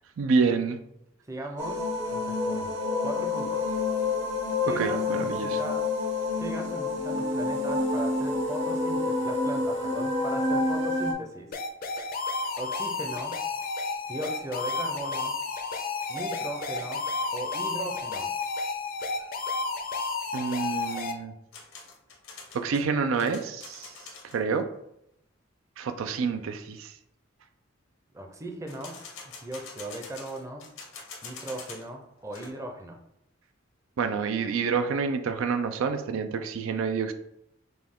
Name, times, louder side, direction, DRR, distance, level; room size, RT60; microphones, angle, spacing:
voice 1, 0.2-0.8 4.8-5.6 20.3-21.3 22.5-23.9 24.3-24.7 25.8-26.9 34.0-37.1, right 5 dB, 80° right, 8 dB, 0.4 m, -28 dB
voice 2, 1.3-1.8 2.1-2.7 3.0-3.8 4.6-5.8 6.4-11.5 12.6-13.3 14.1-15.3 16.1-17.0 17.3-18.3 28.1-29.0 29.4-30.6 31.2-33.0, right 1 dB, 15° right, 2 dB, 0.5 m, -38 dB
sound 1, 1.6-11.1, left 3 dB, 60° right, 0.8 m, -28 dB
sound 2, 11.5-21.1, left 3 dB, 45° left, 0.5 m, -32 dB
sound 3, 21.5-24.4 28.7-31.9 32.2-32.5, left 4 dB, 90° left, 1.1 m, -45 dB
5.3 x 2.3 x 3.6 m, 0.80 s
head